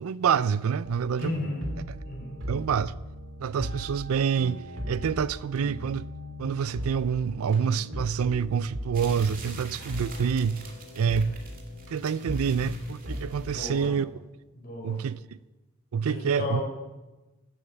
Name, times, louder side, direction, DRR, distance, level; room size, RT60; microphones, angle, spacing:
voice 1, 0.0-1.3 1.9-2.0 2.5-2.9 3.4-6.0 6.4-10.6 11.0-11.3 11.9-14.1 14.8-15.2 15.9-16.6, right 7 dB, 90° right, 0.4 m, -27 dB
sound 1, 0.8-13.9, equal, 60° right, 2.4 m, -38 dB
voice 2, 1.2-1.6 2.0-2.4 13.4-13.9 14.5-15.0 16.1-16.6, left 2 dB, 45° left, 5.1 m, -34 dB
sound 2, 8.9-13.8, right 4 dB, 40° right, 2.2 m, -46 dB
12.5 x 8.7 x 8.2 m
head